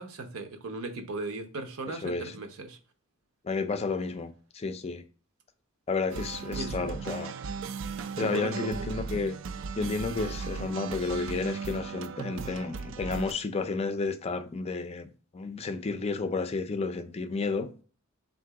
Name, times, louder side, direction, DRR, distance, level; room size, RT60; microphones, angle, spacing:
voice 1, 0.0-2.8 6.6-6.9 8.2-8.9, right 2 dB, 80° right, 0.8 m, -37 dB
voice 2, 1.9-2.3 3.4-5.0 5.9-7.3 8.2-9.4 9.8-15.1 15.3-17.7, left 4 dB, 30° left, 0.4 m, -31 dB
sound 1, 6.1-13.3, right 5 dB, 65° right, 0.4 m, -37 dB
3.7 x 2.6 x 4.5 m
head